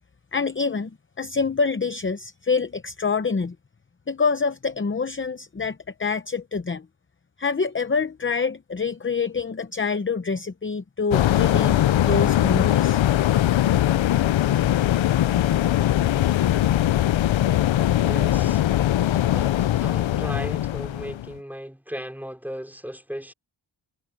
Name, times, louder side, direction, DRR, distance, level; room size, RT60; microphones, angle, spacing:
voice 1, 0.3-3.5 4.1-6.9 7.4-13.0, left 5 dB, 25° left, 0.7 m, -26 dB
sound 1, 11.1-21.3, left 13 dB, 70° left, 0.5 m, -21 dB
voice 2, 18.0-18.6 19.0-23.3, equal, 5° right, 4.2 m, -36 dB
wide cardioid pair, 115°, 47 cm